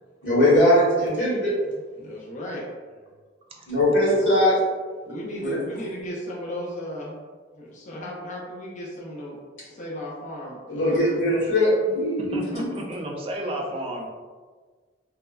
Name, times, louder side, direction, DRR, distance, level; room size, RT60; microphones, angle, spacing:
voice 1, 0.2-1.5 3.7-4.6 5.4-5.6 10.7-12.7, left 1 dB, 90° left, -8 dB, 1.2 m, -20 dB
voice 2, 2.0-2.7 4.1-4.2 5.1-7.2 7.6-9.4 9.6-11.2, equal, 40° left, -4 dB, 0.5 m, -35 dB
voice 3, 12.3-14.1, right 1 dB, 30° right, 0 dB, 0.3 m, -32 dB
3.2 x 2.0 x 2.2 m, 1.5 s
head